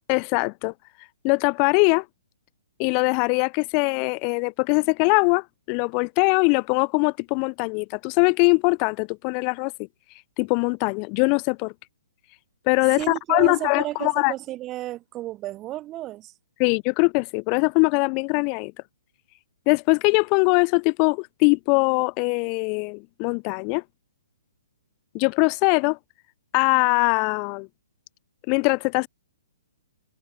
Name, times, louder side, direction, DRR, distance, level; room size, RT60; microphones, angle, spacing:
voice 1, 0.1-0.7 1.2-2.1 2.8-9.7 10.4-11.7 12.7-14.3 16.6-18.7 19.7-23.8 25.1-26.0 26.5-27.7 28.5-29.1, left 39 dB, 30° left, 0.3 m, -22 dB
voice 2, 13.0-16.3, right 15 dB, 25° right, 0.7 m, -32 dB
figure-of-eight pair, 125°, 0 cm